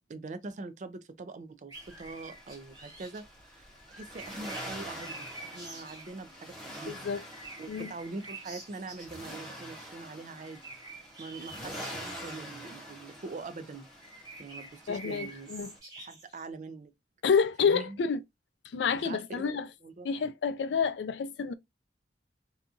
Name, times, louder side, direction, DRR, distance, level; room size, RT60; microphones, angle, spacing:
voice 1, 0.1-3.7 3.9-7.1 7.6-10.7 11.2-13.9 14.4-15.5 16.0-16.9 17.6-18.0 19.0-19.6 19.8-20.1, right 3 dB, 45° right, 0.4 m, -43 dB
Accelerating revving vroom, 1.7-15.8, equal, 5° left, 0.8 m, -46 dB
sound 1, 1.7-3.2 3.8-6.2 7.0-9.1 10.3-12.4 14.0-16.5, right 2 dB, 20° right, 1.1 m, -47 dB
voice 2, 6.9-7.2 7.7-7.9 14.9-15.7 17.2-18.2 18.6-19.7 20.0-21.5, left 6 dB, 75° left, 0.4 m, -29 dB
2.8 x 2.3 x 2.5 m
head